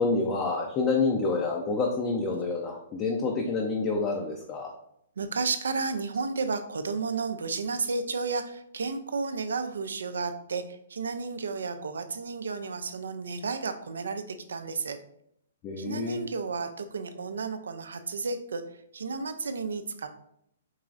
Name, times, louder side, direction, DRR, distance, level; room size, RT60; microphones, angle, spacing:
voice 1, 0.0-4.7 15.6-16.2, left 3 dB, 30° left, 1 dB, 0.6 m, -28 dB
voice 2, 5.2-15.0 15.8-18.6 18.9-20.1, right 4 dB, 75° right, 8 dB, 0.5 m, -32 dB
4.6 x 3.0 x 2.5 m, 0.71 s
hypercardioid pair, 125°, 0 cm